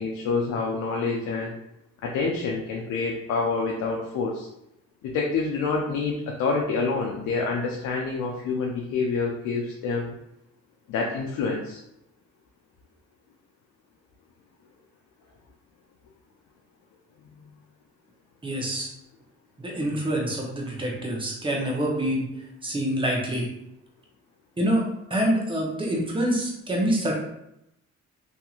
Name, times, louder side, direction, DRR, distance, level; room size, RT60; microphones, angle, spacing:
voice 1, 0.0-1.5 2.0-4.5 5.0-10.1 10.9-11.8, left 4 dB, 80° left, -1 dB, 0.5 m, -27 dB
voice 2, 18.4-18.9 19.6-22.3 22.6-23.5 24.6-24.8 25.1-27.1, right 1 dB, 15° right, -2 dB, 0.8 m, -26 dB
2.8 x 2.7 x 2.4 m, 0.83 s
cardioid pair, 90°, 30 cm